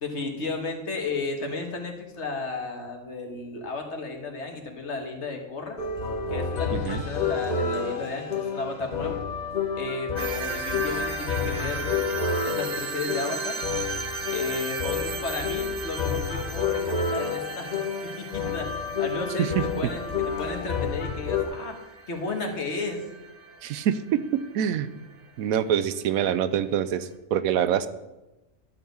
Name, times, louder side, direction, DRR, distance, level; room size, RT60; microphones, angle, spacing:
voice 1, 0.0-5.8 6.3-9.2 9.8-12.2 12.4-13.6 14.3-21.8 22.1-23.0, left 3 dB, 55° left, 3 dB, 1.6 m, -33 dB
sound 1, 5.8-21.4, left 5 dB, 35° left, 1.0 m, -30 dB
voice 2, 6.7-7.0 19.4-19.6 23.6-24.9 25.4-27.9, right 9 dB, 90° right, 13 dB, 1.1 m, -25 dB
sound 2, 10.2-25.1, right 4 dB, 40° right, 0.7 m, -37 dB
12.0 x 4.3 x 8.0 m, 1.0 s
omnidirectional pair, 1.5 m